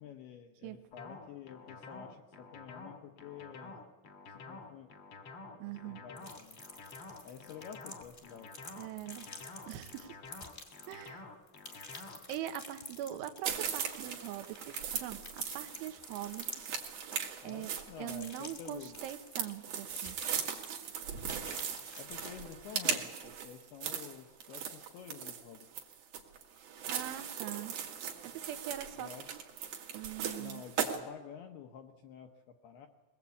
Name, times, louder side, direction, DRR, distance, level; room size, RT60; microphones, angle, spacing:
voice 1, 0.0-3.8 4.3-4.9 5.7-6.6 7.2-8.6 17.4-19.0 22.0-25.8 29.0-29.3 30.4-32.9, left 8 dB, 75° left, 4 dB, 2.4 m, -49 dB
sound 1, 0.9-12.4, left 3 dB, 45° left, 1.8 m, -49 dB
voice 2, 5.6-6.0 8.8-9.3 9.7-10.2 10.9-11.3 11.7-11.9 12.3-16.7 17.4-17.7 18.0-20.2 26.9-27.8 28.2-29.4 29.9-30.6, right 12 dB, 80° right, 9 dB, 3.3 m, -42 dB
sound 2, 6.2-11.2 11.5-19.5 19.9-20.8 21.1-22.3, left 2 dB, 25° left, 1.3 m, -50 dB
sound 3, 13.4-31.0, right 8 dB, 55° right, 3.1 m, -39 dB
22.0 x 20.0 x 8.3 m, 1.3 s
omnidirectional pair, 5.7 m